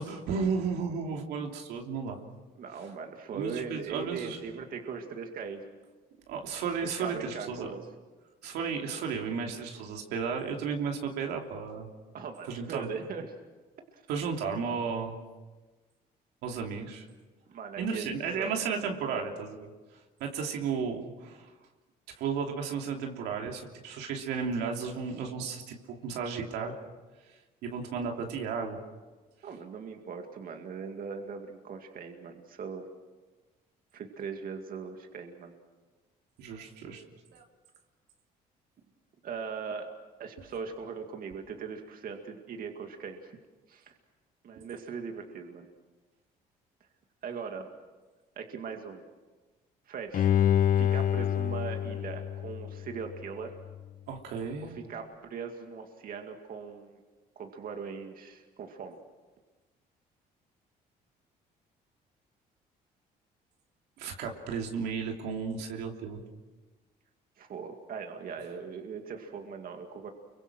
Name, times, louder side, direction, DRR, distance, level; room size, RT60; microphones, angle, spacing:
voice 1, 0.0-2.2 3.3-4.4 6.3-7.7 8.4-11.9 12.4-12.9 14.1-15.2 16.4-17.0 17.8-19.7 20.2-21.5 22.2-25.8 26.0-26.7 27.6-28.8 36.4-37.1 37.3-37.4 44.5-44.6 54.1-54.8 64.0-66.2, right 5 dB, 85° right, 2 dB, 3.0 m, -34 dB
voice 2, 2.6-5.7 7.0-7.8 12.1-13.3 13.9-14.0 17.5-18.0 18.4-18.5 19.1-19.3 29.4-32.8 33.9-35.5 39.2-39.9 40.2-43.3 43.7-44.0 44.4-45.7 47.2-47.7 48.4-49.0 49.9-50.3 50.8-53.5 54.6-57.0 57.4-59.0 67.4-70.1, right 6 dB, 60° right, 4 dB, 2.3 m, -40 dB
Bowed string instrument, 50.1-53.3 53.7-53.8, left 10 dB, 55° left, 0.8 m, -27 dB
29.0 x 23.5 x 6.2 m, 1.3 s
cardioid pair, 90°, 17 cm